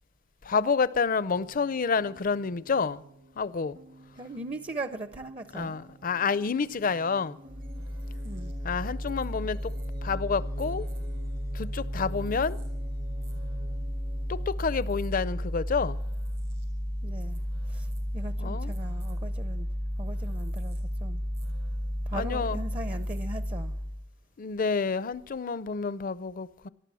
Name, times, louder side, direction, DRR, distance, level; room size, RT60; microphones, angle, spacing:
voice 1, 0.4-3.0 3.4-3.8 5.5-7.4 8.6-9.7 10.0-10.9 11.5-12.6 14.3-16.0 18.4-18.7 22.1-22.6 24.4-26.7, left 5 dB, 45° left, 0.5 m, -29 dB
sound 1, 1.3-14.5, right 2 dB, 50° right, 1.1 m, -48 dB
voice 2, 4.2-5.8 8.2-8.5 17.0-17.4 17.7-19.7 20.0-21.2 22.1-23.7, right 2 dB, 30° right, 0.6 m, -39 dB
sound 2, 7.5-24.0, equal, 70° right, 5.6 m, -33 dB
18.5 x 12.5 x 6.2 m
head